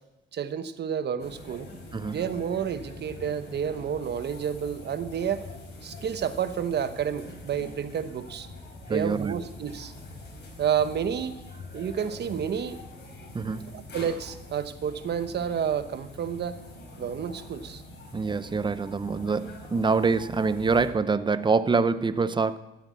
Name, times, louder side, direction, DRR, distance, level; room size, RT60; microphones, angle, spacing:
voice 1, 0.3-1.7 2.1-5.4 5.8-8.5 8.9-9.9 10.6-11.4 11.7-12.8 13.7-16.6 17.0-17.8, right 8 dB, 55° right, 1.1 m, -30 dB
sound 1, 1.2-20.9, left 2 dB, 60° left, 4.6 m, -44 dB
voice 2, 1.9-2.2 8.9-9.3 13.3-13.7 18.1-22.6, right 4 dB, 25° right, 0.7 m, -25 dB
14.5 x 8.1 x 8.3 m
cardioid pair, 90°, 20 cm